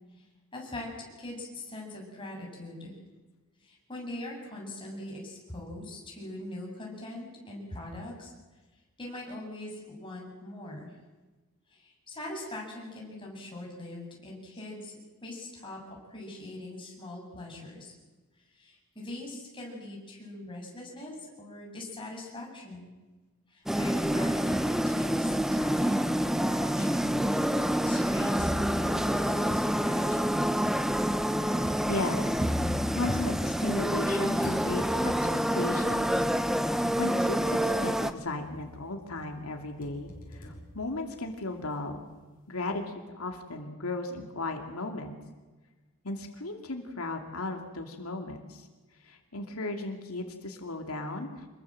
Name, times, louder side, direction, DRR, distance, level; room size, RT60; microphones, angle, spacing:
voice 1, 0.5-0.9 1.2-2.9 3.6-8.3 9.0-10.9 11.7-17.9 18.4-22.9 23.5-25.3 25.5-27.2 27.8-30.4, left 1 dB, 25° left, -2 dB, 7.8 m, -42 dB
sound 1, 23.7-38.1, equal, ahead, 0.9 m, -27 dB
sound 2, 23.9-24.8 25.4-25.5 26.4-26.5 28.4-34.1 34.4-35.4 36.6-36.7 37.2-37.6 38.0-38.8 39.2-41.5, left 1 dB, 40° left, 6.7 m, -40 dB
voice 2, 31.9-32.4 33.0-42.1 42.5-45.2 46.0-48.7 49.0-51.5, left 2 dB, 85° left, 4 dB, 2.7 m, -36 dB
27.0 x 22.0 x 7.7 m, 1.2 s
head